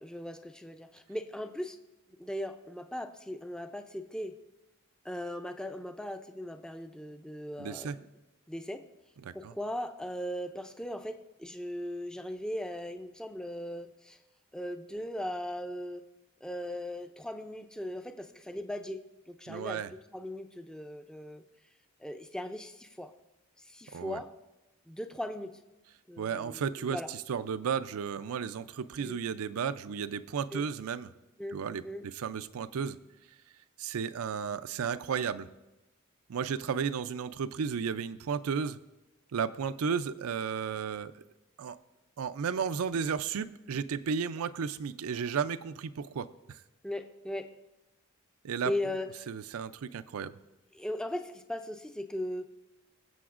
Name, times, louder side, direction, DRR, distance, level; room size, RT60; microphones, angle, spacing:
voice 1, 0.0-1.8 2.2-4.3 5.0-7.9 8.5-8.8 9.3-14.2 14.5-16.1 16.4-19.0 19.3-19.8 20.1-21.4 22.0-23.1 23.6-24.3 24.9-25.5 26.1-27.1 29.0-29.2 30.5-30.6 31.4-31.6 31.8-32.0 46.8-47.5 48.6-49.1 50.7-52.5, left 1 dB, 5° left, 7 dB, 0.4 m, -38 dB
voice 2, 7.6-8.0 9.2-9.5 19.5-19.9 23.9-24.2 26.2-31.1 31.5-33.0 33.8-35.5 36.3-38.8 39.3-41.2 41.6-41.8 42.2-46.6 48.4-48.7 49.3-50.3, right 6 dB, 90° right, 13 dB, 0.4 m, -33 dB
22.0 x 7.8 x 2.5 m, 1.0 s
head